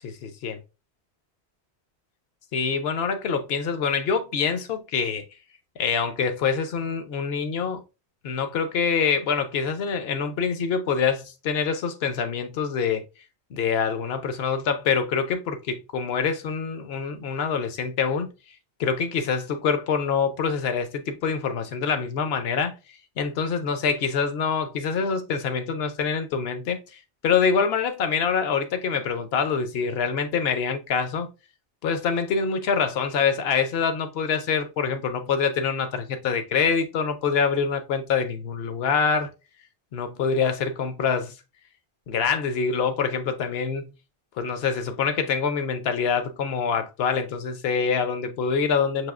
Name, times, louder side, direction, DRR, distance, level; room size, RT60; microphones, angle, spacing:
voice 1, 0.0-0.6 2.5-5.2 5.8-7.8 8.2-13.1 13.5-18.3 18.8-22.7 23.2-31.3 31.8-39.3 39.9-41.4 42.1-43.9 44.4-49.1, left 6 dB, 70° left, 0.8 m, -25 dB
5.9 x 2.7 x 2.4 m
omnidirectional pair, 1.1 m